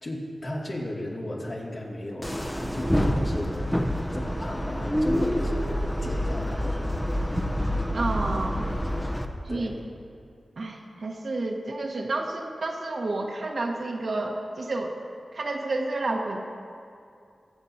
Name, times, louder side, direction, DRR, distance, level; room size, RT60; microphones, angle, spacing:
voice 1, 0.0-3.8 4.1-5.7 6.0-6.8 9.5-9.8, left 1 dB, 50° left, -4 dB, 2.4 m, -34 dB
sound 1, 2.2-9.3, equal, 5° left, 0.9 m, -27 dB
voice 2, 7.9-8.6 9.4-9.7 10.6-15.0 15.3-16.4, right 2 dB, 65° right, 0 dB, 1.4 m, -30 dB
21.5 x 8.1 x 2.9 m, 2.5 s
cardioid pair, 55°, 0 cm